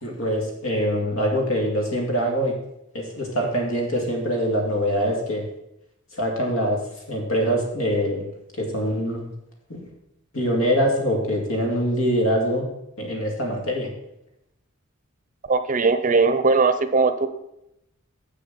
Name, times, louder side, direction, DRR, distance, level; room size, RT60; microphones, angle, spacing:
voice 1, 0.0-2.6 2.9-5.5 6.1-6.8 7.1-8.2 8.6-9.3 9.7-9.9 10.3-12.7 13.0-13.9, equal, 70° left, 1 dB, 2.5 m, -24 dB
voice 2, 15.5-17.3, right 4 dB, 40° right, 11 dB, 0.6 m, -19 dB
7.5 x 6.6 x 6.9 m, 0.83 s
head